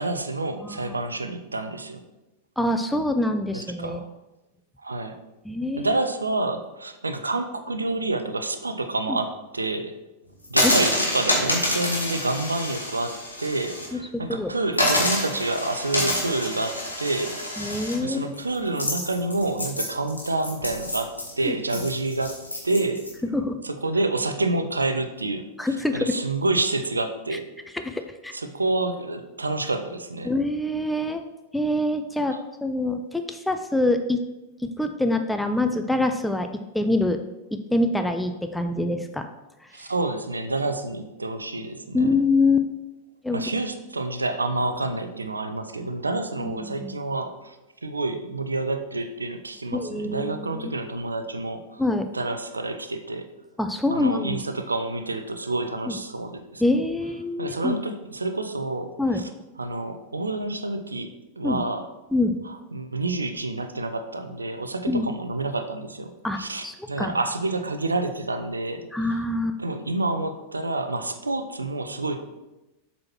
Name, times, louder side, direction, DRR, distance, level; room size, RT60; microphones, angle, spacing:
voice 1, 0.0-2.0 3.5-4.1 4.8-5.2 5.7-10.0 10.5-17.4 18.0-23.0 23.6-27.5 28.3-30.3 32.3-32.4 39.7-42.1 43.3-51.8 52.1-53.3 53.9-56.6 57.4-59.3 59.6-61.9 62.4-68.9 69.6-72.2, right 2 dB, 80° right, 8 dB, 0.5 m, -28 dB
voice 2, 2.6-4.0 5.5-5.9 9.1-9.2 10.8-10.9 14.3-14.5 17.6-18.4 21.4-21.6 23.3-23.6 25.6-26.1 27.7-28.3 30.2-31.2 31.5-34.2 34.6-36.5 36.7-37.2 37.5-39.3 41.9-42.7 43.2-43.4 46.4-46.9 49.7-50.7 51.8-52.1 53.6-54.4 55.9-56.0 56.6-57.7 59.0-59.2 61.4-61.6 62.1-62.4 64.9-65.1 66.2-67.2 68.9-69.6, left 2 dB, 5° left, 6 dB, 0.4 m, -25 dB
sound 1, 10.4-13.9 14.2-14.3 14.7-23.1, left 1 dB, 85° left, 1.6 m, -27 dB
7.5 x 4.2 x 4.4 m, 1.0 s
figure-of-eight pair, 90°, 0 cm